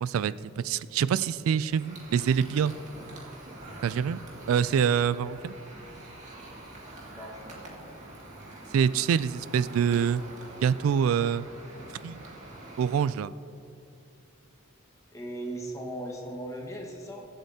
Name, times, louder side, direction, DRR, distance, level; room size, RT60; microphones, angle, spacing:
voice 1, 0.0-2.7 3.8-4.2 4.5-5.5 8.7-10.2 10.6-11.5 12.0-12.2 12.8-13.3, right 7 dB, 75° right, 17 dB, 0.3 m, -25 dB
sound 1, 1.7-13.0, right 2 dB, 35° right, 2.0 m, -46 dB
voice 2, 7.0-7.8 15.1-17.3, right 1 dB, 15° left, -1 dB, 1.5 m, -38 dB
22.0 x 7.8 x 2.8 m, 2.6 s
head